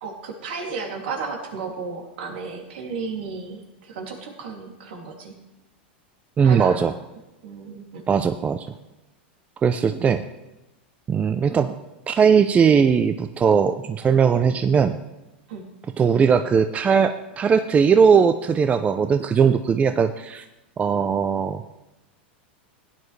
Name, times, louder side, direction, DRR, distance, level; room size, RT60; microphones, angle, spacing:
voice 1, 0.0-5.4 6.4-6.8 7.4-8.0 15.5-15.7, right 5 dB, 70° right, 1 dB, 2.8 m, -33 dB
voice 2, 6.4-6.9 8.1-8.7 9.6-10.2 11.1-11.7 12.1-15.0 16.0-20.4 20.8-21.6, right 6 dB, 25° right, 9 dB, 0.5 m, -19 dB
16.5 x 9.9 x 3.3 m, 0.99 s
hypercardioid pair, 110°, 6 cm